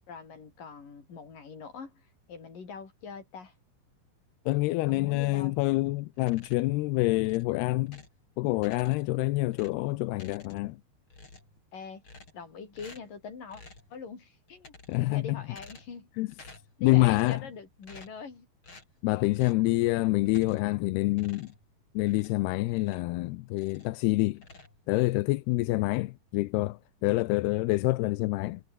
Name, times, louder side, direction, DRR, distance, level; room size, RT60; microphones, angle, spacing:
voice 1, 0.1-3.5 4.9-5.6 11.7-12.0 12.3-13.6 13.9-14.7 15.1-16.1 16.8-18.5, left 5 dB, 55° left, 6.6 m, -43 dB
voice 2, 4.5-8.0 8.4-10.8 14.9-15.4 16.2-16.3 16.8-17.4 19.0-21.5 22.0-24.4 24.9-28.6, left 20 dB, 85° left, 2.8 m, -27 dB
sound 1, 6.1-6.8 7.2-8.2 8.6-9.2 9.5-10.8 11.1-11.6 12.0-12.5 12.7-13.2 13.5-13.9 14.5-15.1 15.5-16.0 16.3-16.8 17.1-17.5 17.8-18.3 18.6-18.9 19.3-19.7 20.3-20.8 21.1-23.2 23.5-24.0 24.3-25.2, left 3 dB, 30° left, 6.5 m, -52 dB
omnidirectional pair, 4.5 m